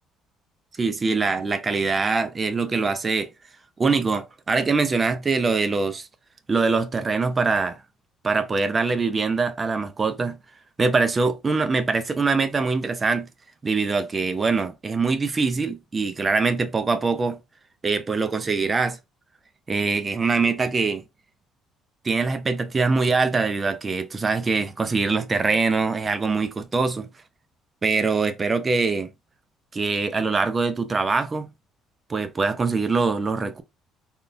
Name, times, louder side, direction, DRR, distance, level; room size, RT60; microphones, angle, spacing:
voice 1, 0.8-3.3 3.8-6.1 6.5-7.8 8.2-10.4 10.8-13.3 13.6-17.4 17.8-19.0 19.7-21.0 22.0-27.1 27.8-29.1 29.7-31.5 32.1-33.6, right 4 dB, 25° right, 0.5 m, -23 dB
3.6 x 2.4 x 2.5 m
cardioid pair, 125°, 0 cm